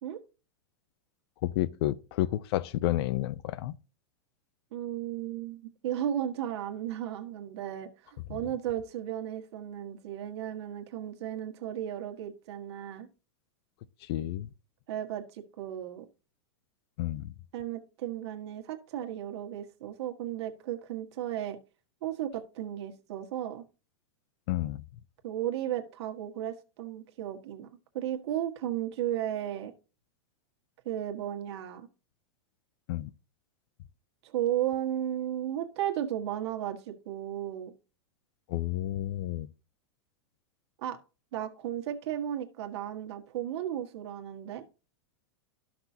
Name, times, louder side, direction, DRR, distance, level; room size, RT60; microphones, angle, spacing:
voice 1, 1.4-3.8 14.0-14.5 17.0-17.3 24.5-24.8 32.9-33.1 38.5-39.5, left 14 dB, 60° left, 0.5 m, -30 dB
voice 2, 4.7-13.1 14.9-16.1 17.5-21.6 22.0-23.6 25.2-27.7 27.9-29.7 30.8-31.9 34.2-37.7 40.8-41.0 41.3-44.6, right 11 dB, 60° right, 1.6 m, -34 dB
13.5 x 5.9 x 2.7 m
supercardioid pair, 145°, 15 cm